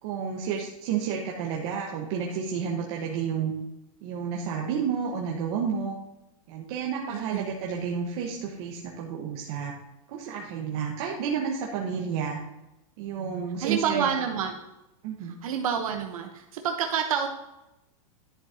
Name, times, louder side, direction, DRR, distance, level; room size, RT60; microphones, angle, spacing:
voice 1, 0.0-3.5 4.0-6.0 6.5-9.7 10.1-12.4 13.0-14.1 15.0-15.3, right 7 dB, 50° right, -2 dB, 1.4 m, -31 dB
voice 2, 7.1-7.5 13.6-14.6 15.4-17.3, right 7 dB, 75° right, 4 dB, 1.1 m, -28 dB
11.0 x 6.4 x 2.9 m, 0.92 s
supercardioid pair, 150°, 18 cm